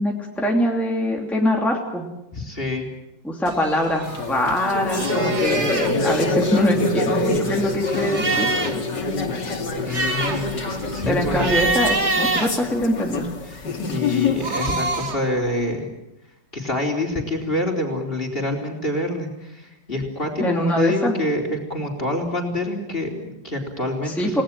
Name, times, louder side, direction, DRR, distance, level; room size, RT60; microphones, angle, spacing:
voice 1, 0.0-2.0 3.2-8.5 11.1-13.2 20.4-21.1 24.0-24.4, equal, ahead, -1 dB, 2.8 m, -23 dB
voice 2, 2.3-2.9 9.8-11.5 13.5-13.6 13.9-15.9 16.5-24.4, left 1 dB, 30° left, 3 dB, 4.4 m, -26 dB
sound 1, 3.5-4.6 4.9-5.9 6.7-8.9 9.3-9.4 9.7-13.3 14.2-15.3, right 3 dB, 40° right, 2.5 m, -26 dB
sound 2, 4.0-14.6, left 3 dB, 70° left, 3.1 m, -25 dB
30.0 x 19.0 x 7.6 m, 0.90 s
omnidirectional pair, 2.0 m